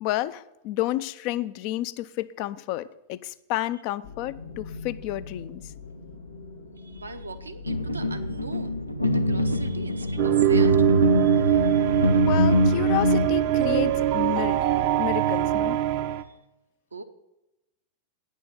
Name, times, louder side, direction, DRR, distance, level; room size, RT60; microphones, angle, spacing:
voice 1, 0.0-5.7 12.2-14.6 15.0-15.8, left 15 dB, 45° left, 15 dB, 0.4 m, -30 dB
sound 1, 4.0-15.3, left 3 dB, 70° left, 1.3 m, -42 dB
voice 2, 6.8-10.8 11.1-12.1 16.2-16.3 16.9-17.0, right 3 dB, 80° right, 7 dB, 0.8 m, -40 dB
sound 2, 7.7-13.3, left 1 dB, 90° left, 0.6 m, -24 dB
sound 3, 10.2-16.2, right 13 dB, 50° right, 0.6 m, -22 dB
9.3 x 6.4 x 8.6 m, 0.94 s
figure-of-eight pair, 90°, 0 cm